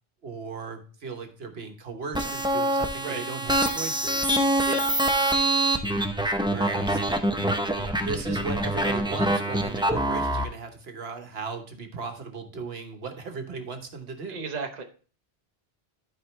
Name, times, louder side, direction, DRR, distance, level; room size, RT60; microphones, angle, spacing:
voice 1, 0.2-4.3 6.5-7.0 8.0-14.4, right 4 dB, 70° right, 5 dB, 1.4 m, -37 dB
sound 1, 2.1-10.4, right 1 dB, 5° right, 0.6 m, -25 dB
voice 2, 14.3-14.8, right 5 dB, 40° right, 4 dB, 1.0 m, -35 dB
12.5 x 4.9 x 3.2 m, 0.38 s
omnidirectional pair, 1.1 m